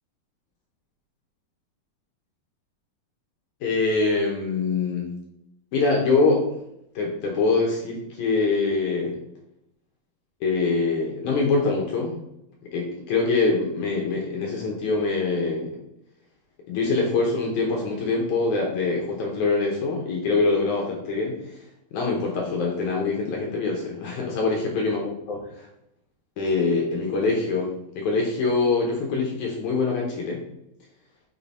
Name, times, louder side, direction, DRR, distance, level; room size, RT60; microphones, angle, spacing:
voice 1, 3.6-5.1 5.7-6.4 7.0-9.2 10.4-12.1 12.7-15.8 16.7-21.4 21.9-25.0 25.3-25.7 26.4-30.4, left 3 dB, 70° left, -1 dB, 1.9 m, -24 dB
6.1 x 3.8 x 4.1 m, 0.80 s
omnidirectional pair, 4.4 m